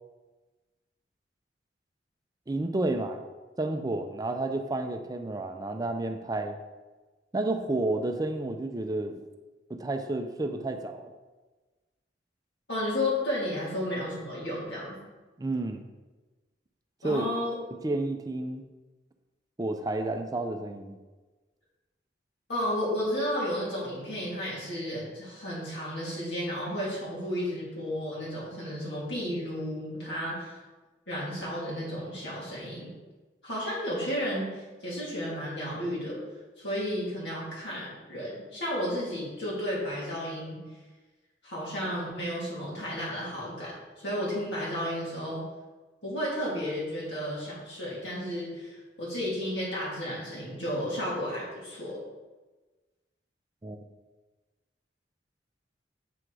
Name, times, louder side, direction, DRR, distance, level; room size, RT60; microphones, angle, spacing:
voice 1, 2.5-3.2 3.6-6.6 7.3-9.2 9.7-11.1 15.4-15.8 17.0-17.3 17.7-18.6 19.6-21.0 53.6-53.8, right 2 dB, 20° right, 6 dB, 0.4 m, -31 dB
voice 2, 12.7-15.0 17.0-17.6 22.5-30.6 31.1-32.9 33.4-36.2 36.6-40.6 41.4-45.4 46.0-52.0, equal, 75° left, -7 dB, 2.1 m, -33 dB
7.6 x 3.7 x 4.7 m, 1.2 s
head